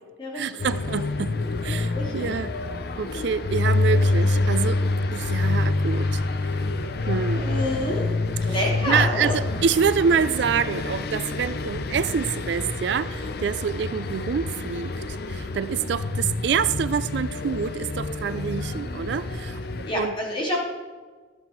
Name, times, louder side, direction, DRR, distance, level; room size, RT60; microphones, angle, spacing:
voice 1, 0.3-1.4 1.6-2.5 3.0-4.8 5.1-6.6 7.0-7.5 8.8-20.1, right 6 dB, 60° right, 14 dB, 0.4 m, -26 dB
sound 1, 0.6-19.9, left 2 dB, 50° left, 0.6 m, -27 dB
voice 2, 1.9-2.3 7.3-8.1 8.4-9.3 19.8-20.6, left 1 dB, 25° left, -3 dB, 2.6 m, -28 dB
13.0 x 7.7 x 4.4 m, 1.4 s
head